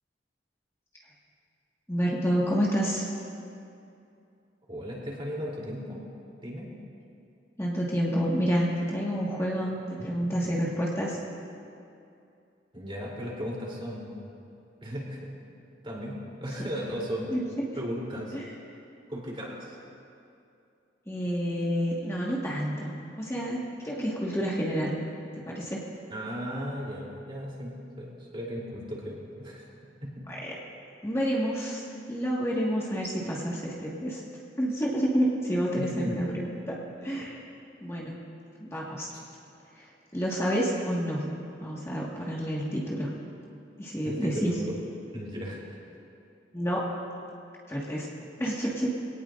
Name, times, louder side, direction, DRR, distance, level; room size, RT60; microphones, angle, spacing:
voice 1, 1.9-3.1 7.6-11.2 17.3-17.4 18.3-18.4 21.1-24.9 25.5-25.8 30.3-30.5 31.0-34.2 34.6-36.6 37.0-37.4 37.8-38.2 38.6-39.1 39.7-41.3 41.6-43.1 43.8-44.5 46.5-46.8 47.7-48.1 48.4-48.9, equal, 15° left, -5 dB, 1.7 m, -29 dB
voice 2, 4.7-6.0 6.4-6.7 10.0-10.3 12.7-14.3 14.8-15.3 15.8-17.3 17.7-18.4 19.1-19.8 26.1-29.6 30.0-30.1 35.8-36.3 39.1-39.2 44.0-44.5 45.1-45.8, equal, 30° right, -4 dB, 3.3 m, -36 dB
23.0 x 18.0 x 2.6 m, 2.6 s
head